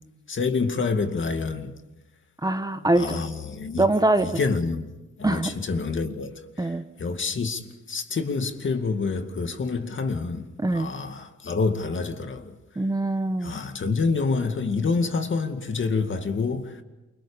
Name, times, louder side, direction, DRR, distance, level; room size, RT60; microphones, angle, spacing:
voice 1, 0.3-1.7 3.0-3.9 4.2-4.9 5.2-12.6 13.4-16.8, left 4 dB, 40° left, 2.3 m, -27 dB
voice 2, 2.4-3.2 3.8-4.3 5.2-5.5 6.6-6.8 10.6-10.9 12.8-13.5, right 2 dB, 10° right, 1.2 m, -23 dB
29.0 x 24.5 x 5.2 m
cardioid pair, 90°, 30 cm